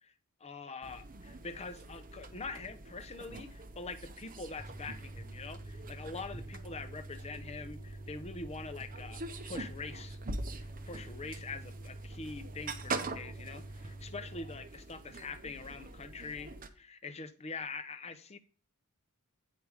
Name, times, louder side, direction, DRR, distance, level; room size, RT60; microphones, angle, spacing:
voice 1, 0.4-10.2 10.6-18.4, left 4 dB, 30° left, 0.7 m, -44 dB
sound 1, 0.8-16.7, right 3 dB, 40° right, 0.8 m, -44 dB
sound 2, 4.6-14.6, right 2 dB, 5° right, 0.9 m, -47 dB
9.5 x 5.0 x 4.7 m
head